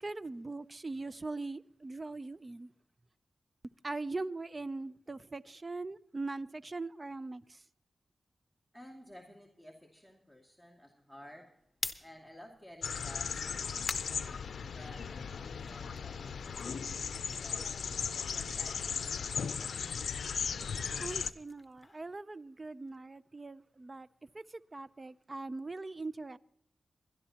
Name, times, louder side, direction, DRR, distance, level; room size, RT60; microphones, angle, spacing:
voice 1, 0.0-2.7 3.8-7.6 21.0-26.4, right 3 dB, 40° right, 0.5 m, -41 dB
voice 2, 8.7-11.7 12.0-14.5 14.7-17.6 18.1-20.0, left 1 dB, 10° right, 2.4 m, -55 dB
sound 1, 11.6-15.1 15.5-18.5 18.8-22.9, left 2 dB, 30° left, 1.0 m, -47 dB
sound 2, 12.8-21.3, left 6 dB, 90° left, 0.4 m, -37 dB
21.5 x 12.5 x 2.9 m
cardioid pair, 60°, 0 cm